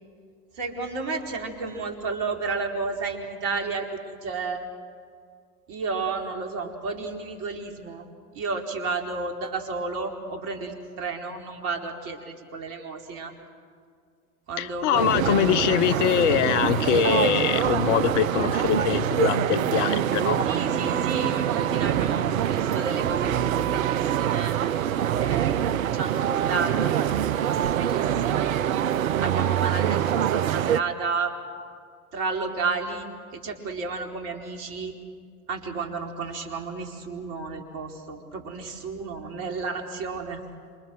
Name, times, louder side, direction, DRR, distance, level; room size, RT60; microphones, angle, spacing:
voice 1, 0.6-4.6 5.7-8.0 8.3-13.3 14.5-16.4 20.4-24.6 25.2-25.5 25.9-27.1 27.5-28.6 29.2-31.3 32.1-34.9 35.5-40.4, right 4 dB, 45° right, 3 dB, 4.6 m, -32 dB
voice 2, 14.6-20.5, left 10 dB, 50° left, 15 dB, 1.1 m, -23 dB
sound 1, 14.9-30.8, right 10 dB, 65° right, 0.9 m, -25 dB
sound 2, 15.2-23.7, right 1 dB, 75° left, 7.8 m, -39 dB
27.5 x 27.5 x 7.9 m, 2.1 s
figure-of-eight pair, 85°, 45 cm